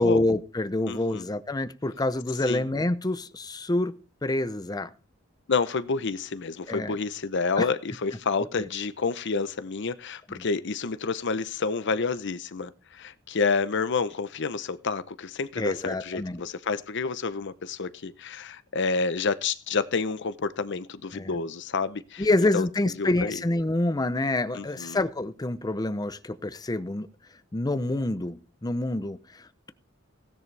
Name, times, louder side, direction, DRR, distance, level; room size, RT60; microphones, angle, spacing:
voice 1, 0.0-3.9 4.2-4.9 6.7-7.0 7.6-7.7 8.6-8.7 10.3-10.4 15.6-16.4 21.1-21.3 22.2-27.1 27.5-29.7, left 2 dB, 20° left, 0.6 m, -27 dB
voice 2, 0.9-1.2 2.5-2.6 5.5-22.3 22.5-22.7 23.0-23.4 24.5-25.0, left 4 dB, 60° left, 0.8 m, -29 dB
16.5 x 11.0 x 3.3 m
head